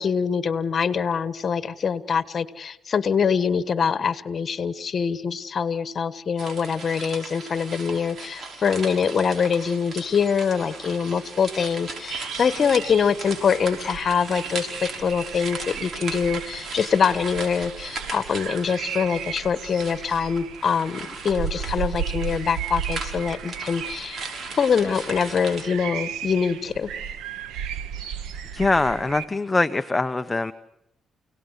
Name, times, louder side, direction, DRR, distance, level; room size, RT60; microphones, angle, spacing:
voice 1, 0.0-24.2 24.6-26.9, left 6 dB, 45° left, 14 dB, 1.4 m, -24 dB
sound 1, 6.4-25.7, right 3 dB, 55° right, 5.7 m, -38 dB
sound 2, 12.1-29.2, right 8 dB, 90° right, 1.3 m, -35 dB
voice 2, 28.5-30.5, left 2 dB, 20° left, 10 dB, 0.8 m, -23 dB
29.0 x 18.0 x 8.2 m, 0.83 s
cardioid pair, 90°, 0 cm